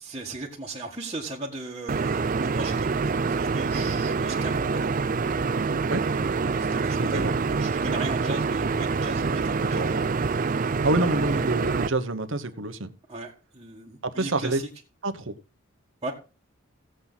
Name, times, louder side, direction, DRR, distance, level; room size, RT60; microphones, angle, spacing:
voice 1, 0.0-5.0 6.1-10.1 11.0-11.5 13.1-14.7 16.0-16.1, right 2 dB, 25° right, 1.9 m, -37 dB
sound 1, 1.9-11.9, right 4 dB, 40° right, 0.4 m, -26 dB
voice 2, 7.0-7.3 9.6-9.9 10.8-12.9 14.0-14.6 15.0-15.3, right 2 dB, 60° right, 1.2 m, -27 dB
16.5 x 7.9 x 4.1 m
head